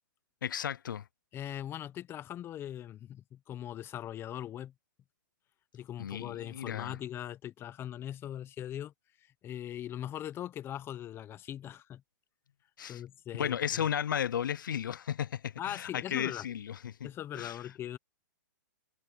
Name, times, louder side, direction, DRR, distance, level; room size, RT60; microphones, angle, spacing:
voice 1, 0.4-1.0 6.0-7.0 12.8-13.0 13.3-17.1 17.3-17.6, left 9 dB, 80° left, 0.6 m, -34 dB
voice 2, 1.3-4.7 5.7-8.9 9.4-12.0 12.9-13.8 15.6-16.5 17.0-18.0, left 11 dB, 20° left, 1.1 m, -40 dB
hypercardioid pair, 135°, 10 cm